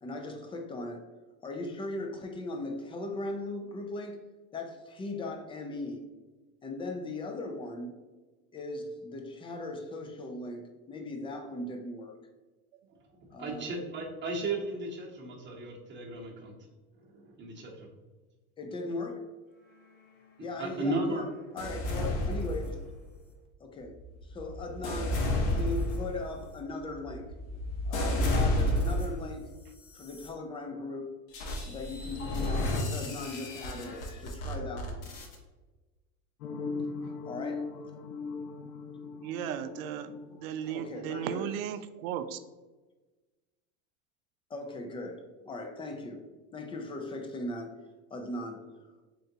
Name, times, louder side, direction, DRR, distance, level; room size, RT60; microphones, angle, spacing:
voice 1, 0.0-1.1 1.4-4.2 4.5-6.1 6.6-8.0 8.5-12.1 13.3-13.7 18.6-19.2 20.4-21.3 21.5-22.8 23.6-24.0 24.3-27.3 27.9-29.5 29.9-31.1 31.7-35.1 37.3-37.7 40.7-41.4 44.5-46.2 46.5-47.8 48.1-48.7, left 2 dB, 15° left, 4 dB, 0.4 m, -38 dB
voice 2, 13.4-16.5 17.1-17.9 20.6-21.2, right 2 dB, 25° right, 0 dB, 1.0 m, -35 dB
sound 1, 21.6-23.1 23.8-29.3 29.9-30.3 31.3-35.4, left 1 dB, 65° left, 1.1 m, -32 dB
sound 2, 36.4-41.2, left 4 dB, 90° left, 0.6 m, -39 dB
voice 3, 39.2-42.4, right 9 dB, 70° right, 11 dB, 0.5 m, -36 dB
3.8 x 3.3 x 2.7 m, 1.2 s
hypercardioid pair, 100°, 42 cm